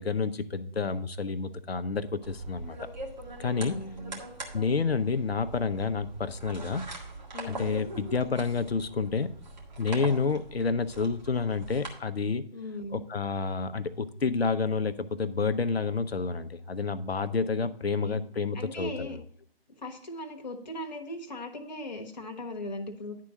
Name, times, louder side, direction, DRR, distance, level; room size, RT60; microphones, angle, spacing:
voice 1, 0.0-2.8 3.4-3.8 4.5-6.8 7.4-9.3 9.8-12.4 12.9-19.1, left 4 dB, 75° left, 12 dB, 0.7 m, -29 dB
sound 1, 2.2-11.9, right 2 dB, 45° right, 1.9 m, -42 dB
voice 2, 3.5-4.2 7.3-7.6 12.5-13.0 17.5-17.7 18.0-18.2 18.5-19.2 19.8-23.2, left 1 dB, 45° left, 4 dB, 1.2 m, -38 dB
10.5 x 3.8 x 6.3 m, 0.62 s
figure-of-eight pair, 150°, 31 cm